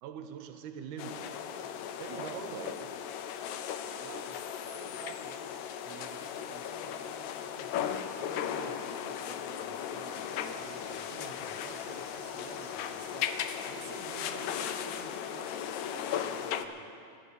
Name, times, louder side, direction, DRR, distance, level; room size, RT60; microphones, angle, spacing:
voice 1, 0.0-1.7 2.0-3.0 3.3-3.4, right 7 dB, 85° right, 7 dB, 2.1 m, -43 dB
sound 1, 1.0-16.7, left 9 dB, 80° left, 1.9 m, -37 dB
voice 2, 2.1-2.5 4.0-5.6 5.8-16.9, right 6 dB, 70° right, 3 dB, 1.9 m, -50 dB
sound 2, 10.1-15.2, left 4 dB, 60° left, 1.3 m, -50 dB
11.0 x 11.0 x 8.2 m, 2.6 s
omnidirectional pair, 3.5 m